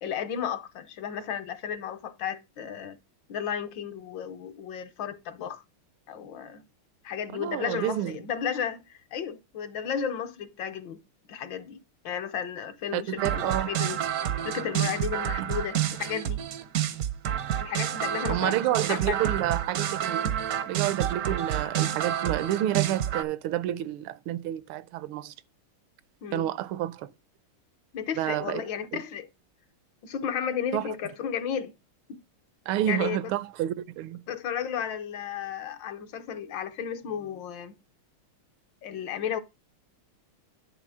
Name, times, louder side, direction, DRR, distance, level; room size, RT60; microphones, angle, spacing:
voice 1, 0.0-3.0 3.3-5.6 6.1-6.6 7.0-11.0 11.3-11.8 12.0-14.0 14.4-16.4 17.6-19.2 26.2-26.5 27.9-29.3 30.0-31.7 32.1-32.2 32.9-33.3 34.3-37.7 38.8-39.4, left 8 dB, 70° left, 1.4 m, -33 dB
voice 2, 7.3-8.1 12.9-13.7 18.3-20.3 20.7-25.3 26.3-27.1 28.2-28.6 28.9-29.0 30.7-30.9 32.7-34.2, right 13 dB, 80° right, 1.4 m, -29 dB
sound 1, 13.2-23.2, right 10 dB, 65° right, 0.9 m, -29 dB
10.5 x 3.8 x 4.7 m
omnidirectional pair, 2.3 m